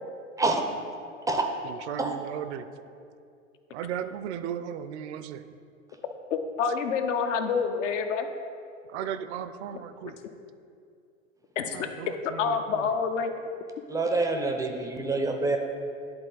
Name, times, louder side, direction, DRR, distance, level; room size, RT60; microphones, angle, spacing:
voice 1, 1.6-2.7 3.7-5.5 8.9-10.2 11.7-12.9, right 9 dB, 60° right, 12 dB, 0.5 m, -36 dB
voice 2, 6.3-8.3 11.6-11.9 12.4-13.3, left 6 dB, 70° left, 6 dB, 0.7 m, -27 dB
voice 3, 13.9-15.6, right 3 dB, 10° right, 4 dB, 0.4 m, -26 dB
10.5 x 3.8 x 3.8 m, 2.4 s
hypercardioid pair, 100°, 38 cm